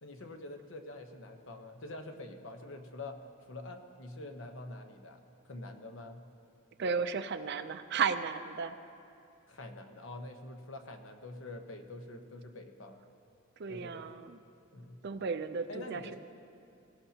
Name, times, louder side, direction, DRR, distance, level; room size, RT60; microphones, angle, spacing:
voice 1, 0.0-3.2 3.5-6.2 9.5-13.0 13.7-14.2 14.7-15.0 15.7-16.2, left 2 dB, 60° left, 5 dB, 1.0 m, -46 dB
voice 2, 6.8-8.8 13.6-14.4 15.0-16.0, right 5 dB, 50° right, 10 dB, 0.5 m, -34 dB
17.5 x 17.0 x 2.9 m, 2.7 s
head